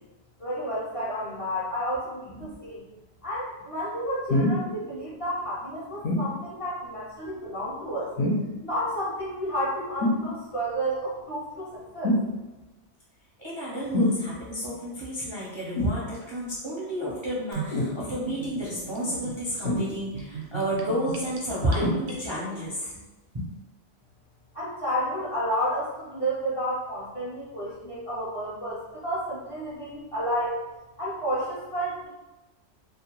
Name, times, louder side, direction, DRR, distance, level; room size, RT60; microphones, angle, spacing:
voice 1, 0.4-2.8 3.2-8.1 8.6-12.2 24.5-30.6 31.0-32.1, equal, 40° left, -9 dB, 0.5 m, -31 dB
sound 1, 4.3-4.6 6.0-6.3 8.2-8.6 10.0-10.3 12.0-12.3 13.9-14.2 15.8-16.0 17.7-18.0 19.6-20.2 21.8-22.0 22.8-22.9, left 1 dB, 65° left, 0.8 m, -24 dB
voice 2, 13.4-23.0 23.3-23.5, right 1 dB, 35° right, -9 dB, 0.5 m, -31 dB
Gurgling / Bathtub (filling or washing), 17.5-22.6, right 4 dB, 75° right, 0.9 m, -38 dB
2.3 x 2.1 x 2.9 m, 1.1 s
omnidirectional pair, 1.2 m